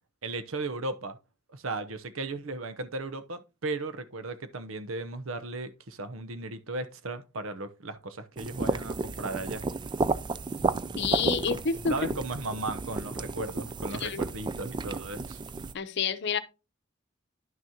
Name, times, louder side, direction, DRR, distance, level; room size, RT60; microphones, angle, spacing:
voice 1, 0.2-1.2 1.5-9.6 11.9-15.4, right 2 dB, 85° right, 0.8 m, -36 dB
sound 1, 8.4-15.7, right 3 dB, 20° right, 0.3 m, -32 dB
voice 2, 11.0-11.9 14.0-14.2 15.7-16.4, left 6 dB, 55° left, 0.7 m, -28 dB
10.5 x 6.3 x 2.9 m
head